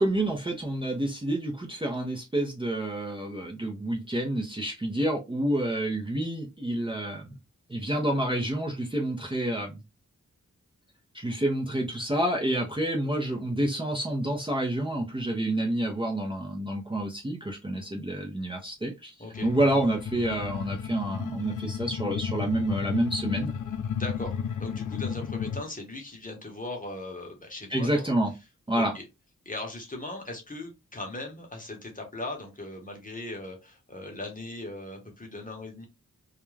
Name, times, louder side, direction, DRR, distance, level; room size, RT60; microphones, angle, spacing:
voice 1, 0.0-7.4 7.7-9.8 11.1-19.1 19.4-23.5 27.7-28.3 28.7-28.9, right 1 dB, 15° right, 0.5 m, -28 dB
sound 1, 19.3-25.6, left 7 dB, 70° left, 0.4 m, -33 dB
voice 2, 23.9-24.3 24.6-28.1 28.7-29.0 29.4-35.9, left 2 dB, 25° left, 0.9 m, -39 dB
2.4 x 2.2 x 3.1 m
wide cardioid pair, 90°, 31 cm